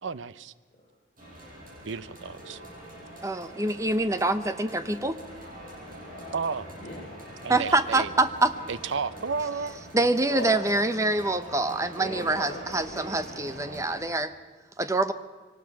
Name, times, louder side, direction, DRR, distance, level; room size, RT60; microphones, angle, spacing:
voice 1, 0.0-0.5 1.8-2.6 6.3-6.6 7.4-8.1 8.7-9.8, right 5 dB, 70° right, 15 dB, 0.6 m, -32 dB
sound 1, 1.2-14.0, equal, 45° right, 6.9 m, -44 dB
voice 2, 3.2-5.2 7.5-8.5 9.9-14.3 14.8-15.1, right 2 dB, 15° right, 11 dB, 0.7 m, -25 dB
voice 3, 5.6-7.2 10.3-10.7 12.0-13.2, left 1 dB, 35° left, -4 dB, 3.6 m, -39 dB
23.0 x 19.0 x 6.0 m, 1.4 s
head